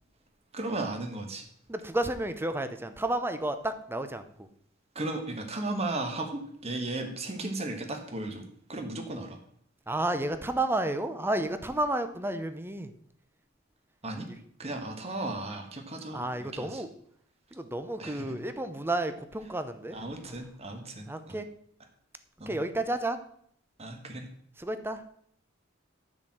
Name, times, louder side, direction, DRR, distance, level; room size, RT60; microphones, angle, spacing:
voice 1, 0.5-1.4 4.9-8.4 8.7-9.4 14.0-14.3 14.6-16.8 18.0-18.4 19.9-21.4 22.4-22.6 23.8-24.3, right 2 dB, 30° right, 4 dB, 1.4 m, -35 dB
voice 2, 1.7-4.5 9.9-12.9 14.3-14.4 16.1-16.9 17.5-20.0 20.2-20.4 21.1-21.5 22.5-23.2 24.6-25.0, right 1 dB, 10° right, 9 dB, 0.7 m, -31 dB
10.0 x 4.4 x 7.5 m, 0.65 s
head